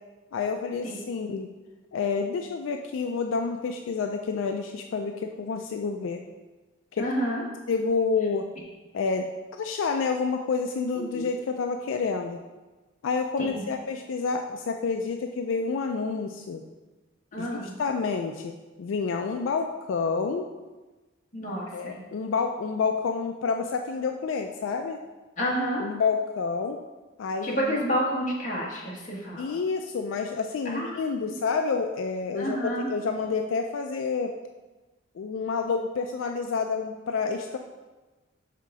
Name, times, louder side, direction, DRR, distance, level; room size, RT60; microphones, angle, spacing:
voice 1, 0.3-1.5 1.9-6.2 6.9-7.1 7.7-8.4 8.9-9.3 9.6-12.4 13.0-16.6 17.4-20.5 21.7-25.0 25.8-26.8 27.2-27.7 29.4-34.3 35.2-37.6, left 5 dB, 80° left, 4 dB, 0.4 m, -29 dB
voice 2, 7.0-7.4 10.9-11.3 13.4-13.6 17.3-17.8 21.3-21.9 25.4-25.8 27.4-29.5 30.6-31.0 32.4-32.9, equal, 40° left, -4 dB, 1.4 m, -29 dB
5.7 x 3.7 x 4.8 m, 1.2 s
head